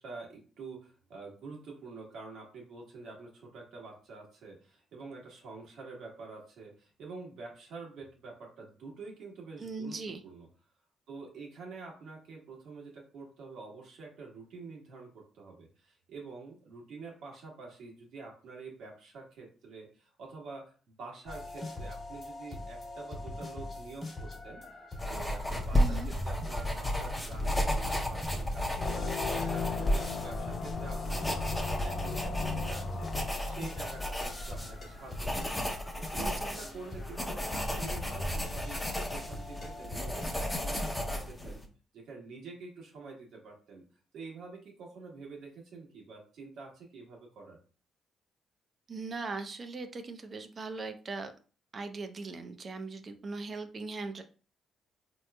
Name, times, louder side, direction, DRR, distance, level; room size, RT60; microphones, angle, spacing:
voice 1, 0.0-10.0 10.2-10.5 11.1-24.6 25.0-29.1 29.4-41.6 41.9-43.8 44.1-47.6, right 4 dB, 75° right, -1 dB, 1.3 m, -47 dB
voice 2, 9.6-10.2 25.7-26.1 36.2-36.3 48.9-51.3 51.7-54.2, right 3 dB, 40° right, 8 dB, 0.5 m, -39 dB
sound 1, 21.3-41.2, left 1 dB, 40° left, 1.1 m, -41 dB
sound 2, 25.0-41.7, equal, 10° left, 0.7 m, -34 dB
sound 3, 28.7-34.9, left 7 dB, 60° left, 0.3 m, -39 dB
3.7 x 3.0 x 2.2 m, 0.38 s
cardioid pair, 90°, 0 cm